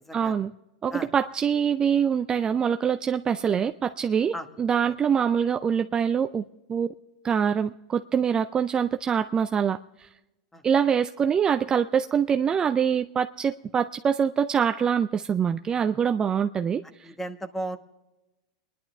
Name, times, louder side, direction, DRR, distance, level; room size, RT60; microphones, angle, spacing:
voice 1, 0.1-0.5 0.8-6.4 6.7-6.9 7.2-10.1 10.6-17.1, right 7 dB, 25° right, 9 dB, 0.4 m, -24 dB
voice 2, 17.0-17.8, right 1 dB, 5° left, 9 dB, 1.2 m, -34 dB
23.5 x 11.0 x 3.3 m, 1.0 s
hypercardioid pair, 110°, 3 cm